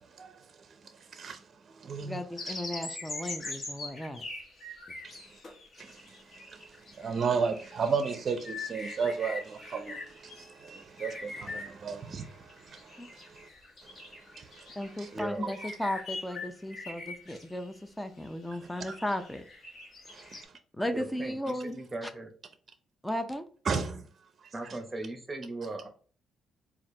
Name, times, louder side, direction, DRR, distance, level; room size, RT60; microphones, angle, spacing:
voice 1, 0.1-2.6 5.0-5.2 5.8-13.5 13.8-15.2 18.9-19.0 20.1-20.5 23.6-24.0, right 5 dB, 45° right, 0.6 m, -35 dB
voice 2, 2.0-4.2 13.0-13.1 14.8-19.4 20.7-21.8 23.0-23.4, left 1 dB, 5° left, 0.6 m, -35 dB
sound 1, 2.4-17.7 18.2-20.4, left 3 dB, 45° left, 1.3 m, -43 dB
voice 3, 15.1-15.5 20.9-22.3 24.5-25.9, right 2 dB, 20° right, 1.0 m, -38 dB
4.3 x 2.5 x 3.2 m
cardioid pair, 90°, 0 cm